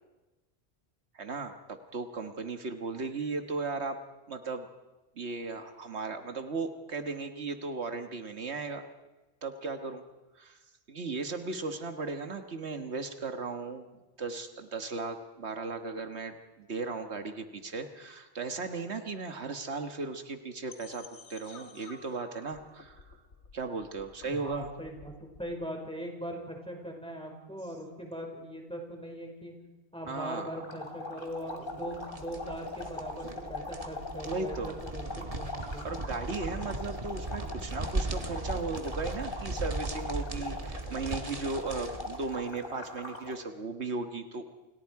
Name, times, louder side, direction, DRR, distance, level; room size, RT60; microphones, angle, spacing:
voice 1, 1.1-4.0 4.3-4.7 5.2-8.8 9.4-10.0 10.4-10.6 10.9-23.0 23.5-24.7 30.1-30.6 34.2-34.8 35.8-44.4, right 3 dB, 80° right, 6 dB, 1.7 m, -36 dB
sound 1, 20.7-25.6, left 3 dB, 85° left, 1.8 m, -53 dB
voice 2, 24.2-29.5 29.9-36.0, equal, 5° left, 1 dB, 5.3 m, -40 dB
sound 2, 30.6-43.4, left 2 dB, 55° left, 3.5 m, -41 dB
sound 3, 31.7-42.4, right 2 dB, 35° right, 1.8 m, -38 dB
29.5 x 29.0 x 4.8 m, 1.1 s
omnidirectional pair, 1.1 m